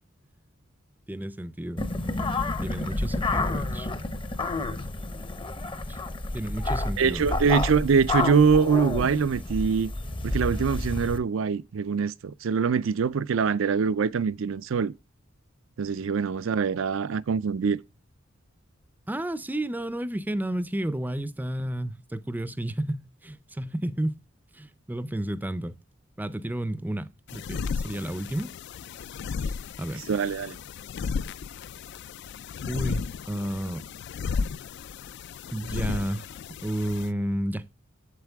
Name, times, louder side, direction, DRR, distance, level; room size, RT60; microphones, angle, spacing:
voice 1, 1.1-1.9 2.6-3.9 5.9-6.0 6.3-7.3 19.1-24.2 24.5-25.7 26.2-28.5 29.4-30.1 32.7-33.8 35.5-36.4 36.6-37.7, right 1 dB, 10° right, 0.4 m, -31 dB
sound 1, 1.8-11.2, left 2 dB, 25° left, 0.7 m, -30 dB
voice 2, 7.0-9.9 10.2-14.9 15.8-17.8 30.1-30.6, right 5 dB, 75° right, 0.4 m, -24 dB
sound 2, 27.3-37.1, left 5 dB, 60° left, 0.3 m, -34 dB
8.0 x 7.5 x 3.4 m
head